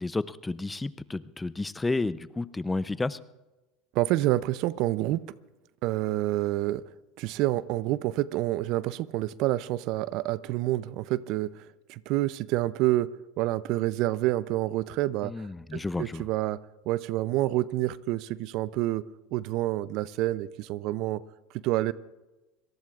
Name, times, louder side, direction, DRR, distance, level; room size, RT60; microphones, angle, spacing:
voice 1, 0.0-3.2 15.2-16.3, left 3 dB, 15° left, 16 dB, 0.5 m, -31 dB
voice 2, 3.9-5.2 5.8-6.8 7.2-11.5 11.9-13.1 13.4-15.3 15.7-16.6 16.9-19.0 19.3-21.2 21.6-21.9, right 16 dB, 65° right, 18 dB, 0.5 m, -28 dB
25.5 x 18.5 x 2.4 m, 1.1 s
supercardioid pair, 95°, 0 cm